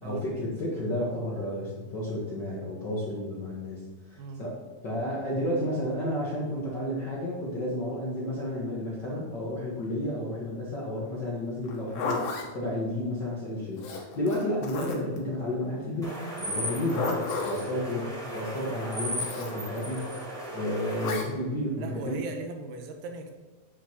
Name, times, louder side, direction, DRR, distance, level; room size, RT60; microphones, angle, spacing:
voice 1, 0.0-12.2 12.5-17.1 17.4-20.1 20.5-22.1, left 1 dB, 60° left, -5 dB, 1.1 m, -32 dB
Zipper (clothing), 11.6-12.5 13.8-15.2 16.6-17.7 19.1-19.5 21.0-21.3, left 4 dB, 80° left, 2.9 m, -33 dB
sound 1, 16.0-21.1, equal, ahead, 1.9 m, -36 dB
voice 2, 17.0-17.3 17.8-18.2 21.8-23.3, right 3 dB, 75° right, 4 dB, 2.4 m, -39 dB
9.0 x 7.6 x 2.9 m, 1.3 s
omnidirectional pair, 4.1 m